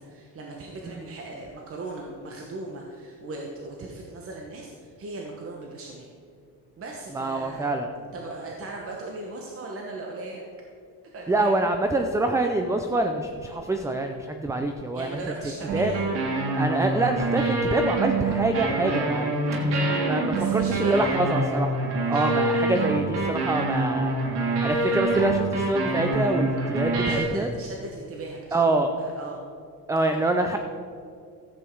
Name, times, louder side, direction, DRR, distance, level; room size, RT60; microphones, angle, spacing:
voice 1, 0.0-6.1 6.8-7.7 8.1-10.5 11.1-11.5 14.9-16.0 20.3-21.0 22.0-22.4 27.0-28.6 29.0-29.4 30.1-30.2, right 2 dB, 35° right, 0 dB, 1.1 m, -38 dB
voice 2, 7.1-7.9 11.3-15.2 15.7-15.9 16.6-19.3 19.6-21.8 22.1-24.2 24.6-27.5 28.5-28.9 29.9-30.6, right 2 dB, 10° right, 5 dB, 0.4 m, -25 dB
sound 1, 15.7-27.2, right 2 dB, 90° right, 2.3 m, -26 dB
13.5 x 8.3 x 4.6 m, 2.3 s
cardioid pair, 160°, 39 cm